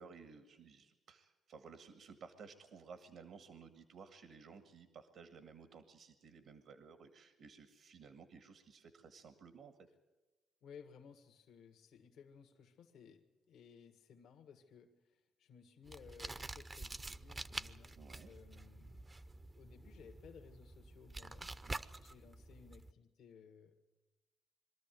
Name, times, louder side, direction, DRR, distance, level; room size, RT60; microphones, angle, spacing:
voice 1, 0.0-9.7 17.9-18.3 21.6-21.8, right 5 dB, 75° right, 9 dB, 1.6 m, -56 dB
voice 2, 10.6-19.1 19.5-21.6 22.0-23.8, left 7 dB, 75° left, 5 dB, 1.6 m, -59 dB
sound 1, 15.8-22.9, right 2 dB, 20° right, 0.6 m, -48 dB
23.0 x 13.5 x 9.2 m, 1.1 s
cardioid pair, 90°, 0 cm